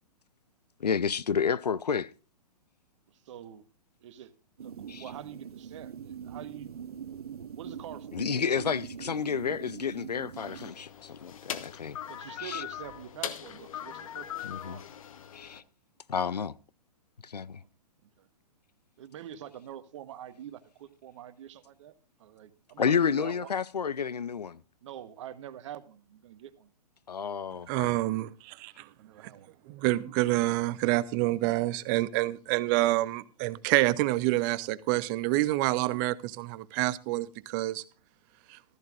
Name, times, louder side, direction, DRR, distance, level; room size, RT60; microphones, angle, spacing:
voice 1, 0.8-2.1 4.9-5.0 8.1-12.0 12.4-12.6 14.4-14.8 15.3-15.6 16.1-16.6 17.2-17.6 22.8-24.6 27.1-27.9, left 6 dB, 80° left, 0.6 m, -30 dB
voice 2, 3.1-3.7 4.0-4.3 4.6-6.7 7.6-8.2 12.1-14.8 17.5-17.7 18.0-18.3 19.0-21.9 22.2-23.5 24.8-26.7 29.0-29.5, right 10 dB, 50° right, 1.3 m, -45 dB
sound 1, 4.6-10.7, right 8 dB, 65° right, 0.9 m, -43 dB
sound 2, 10.4-15.6, left 10 dB, 55° left, 1.2 m, -40 dB
voice 3, 27.7-28.9 29.7-37.8 38.5-38.6, right 17 dB, 30° right, 0.6 m, -27 dB
15.0 x 13.5 x 2.5 m
figure-of-eight pair, 120°, 20 cm